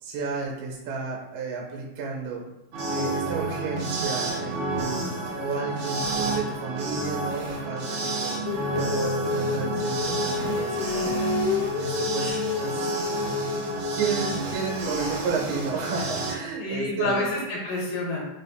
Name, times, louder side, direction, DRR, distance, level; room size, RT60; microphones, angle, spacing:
voice 1, 0.0-2.5 2.9-5.1 5.4-12.9 13.9-17.3, right 5 dB, 90° right, -2 dB, 2.7 m, -32 dB
sound 1, 2.7-16.4, right 2 dB, 70° right, 1.8 m, -30 dB
Female singing, 8.5-14.2, left 5 dB, 90° left, 2.5 m, -29 dB
voice 2, 10.9-11.3 12.2-12.4 16.6-18.2, left 2 dB, 70° left, -4 dB, 2.4 m, -29 dB
5.8 x 2.3 x 3.4 m, 0.91 s
omnidirectional pair, 4.3 m